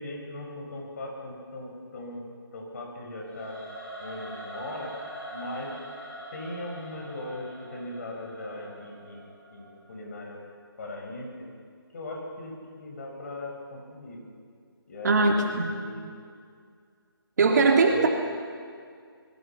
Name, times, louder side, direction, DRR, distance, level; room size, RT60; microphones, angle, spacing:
voice 1, 0.0-2.3 2.5-3.6 4.0-4.9 5.3-5.8 6.3-9.2 9.5-10.4 10.8-11.5 11.9-14.2 14.9-16.1 17.9-18.1, left 1 dB, 40° left, 0 dB, 6.2 m, -39 dB
Singing / Musical instrument, 3.2-10.3, right 1 dB, 10° left, 4.5 m, -43 dB
voice 2, 15.0-15.7 17.4-18.1, right 3 dB, 45° right, 2 dB, 3.0 m, -20 dB
24.0 x 22.0 x 6.0 m, 2.1 s
figure-of-eight pair, 165°, 13 cm